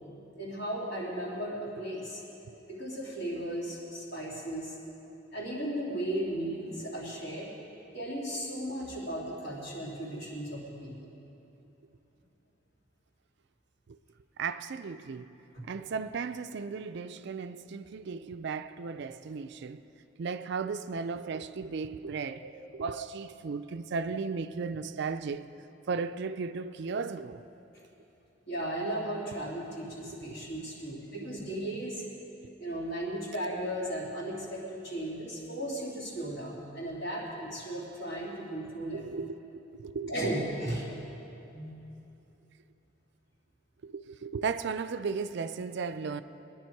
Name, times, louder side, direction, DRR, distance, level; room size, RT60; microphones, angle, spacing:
voice 1, 0.3-2.2 2.7-4.8 5.3-7.5 7.9-11.1 15.5-15.7 22.4-22.5 23.0-23.1 28.5-32.0 32.6-39.0 40.1-40.9 41.5-41.7, right 1 dB, 55° left, -5 dB, 2.9 m, -36 dB
voice 2, 14.4-15.3 15.6-19.8 20.2-22.4 22.7-25.4 25.9-27.4 38.9-39.4 39.7-40.2 43.8-46.2, right 5 dB, 55° right, 11 dB, 0.4 m, -35 dB
20.0 x 10.5 x 4.6 m, 3.0 s
head